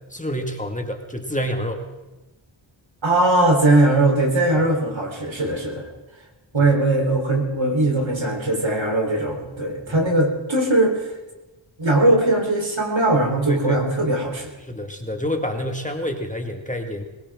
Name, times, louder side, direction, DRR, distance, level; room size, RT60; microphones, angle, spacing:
voice 1, 0.1-1.8 6.6-6.7 13.5-13.8 14.7-17.0, equal, 15° left, 4 dB, 1.9 m, -28 dB
voice 2, 3.0-5.8 6.5-11.1 11.8-14.5, right 2 dB, 65° right, 1 dB, 4.0 m, -20 dB
21.5 x 18.5 x 3.7 m, 1.1 s
wide cardioid pair, 50°, 49 cm